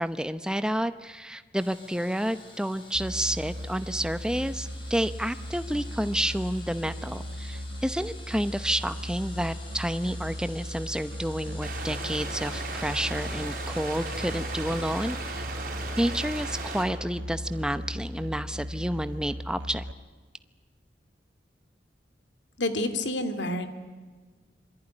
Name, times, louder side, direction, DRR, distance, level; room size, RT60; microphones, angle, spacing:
voice 1, 0.0-15.4 16.0-19.8, equal, 5° right, 11 dB, 0.8 m, -30 dB
sound 1, 1.6-15.3, left 2 dB, 30° left, 5.9 m, -49 dB
Musical instrument, 2.9-19.9, equal, 90° right, 1.4 m, -37 dB
sound 2, 11.6-16.8, right 3 dB, 50° right, 5.4 m, -36 dB
voice 2, 22.6-23.7, left 1 dB, 80° left, 9 dB, 2.6 m, -28 dB
26.5 x 22.0 x 10.0 m, 1.4 s
head